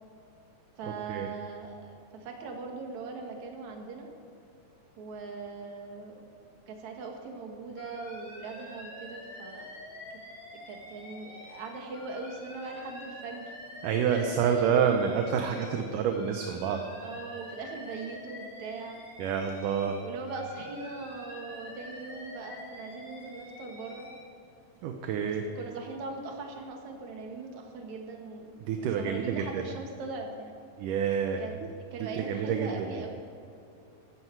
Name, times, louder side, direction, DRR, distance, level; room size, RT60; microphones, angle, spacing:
voice 1, 0.8-4.1 5.0-6.2 6.7-9.7 10.5-13.5 14.1-14.9 17.0-19.0 20.0-24.1 25.2-30.5 31.4-31.5 31.8-33.1, right 3 dB, 60° right, 2 dB, 2.9 m, -40 dB
Alarm, 7.8-11.6 11.9-15.8 16.1-20.0 20.3-24.1, left 1 dB, 50° left, 4.8 m, -46 dB
voice 2, 13.8-16.8 19.2-20.0 24.8-25.5 28.7-29.6 30.8-31.4 32.1-32.7, right 7 dB, 75° right, 4 dB, 2.3 m, -28 dB
16.0 x 13.0 x 4.7 m, 2.6 s
omnidirectional pair, 4.0 m